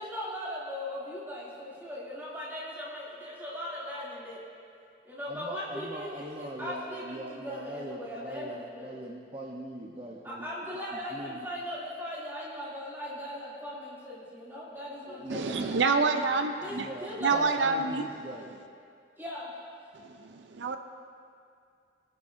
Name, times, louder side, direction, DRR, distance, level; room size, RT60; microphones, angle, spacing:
voice 1, 0.0-4.4 5.0-8.9 10.2-15.8 16.6-17.4 19.2-19.5, left 1 dB, 10° right, -8 dB, 2.6 m, -39 dB
voice 2, 5.3-10.5 10.9-11.5 15.1-15.5 16.7-18.5, right 1 dB, 30° right, -2 dB, 0.8 m, -41 dB
voice 3, 15.3-16.9 17.2-18.0 20.0-20.8, right 4 dB, 75° right, 7 dB, 0.5 m, -27 dB
21.5 x 10.0 x 2.6 m, 2.4 s
head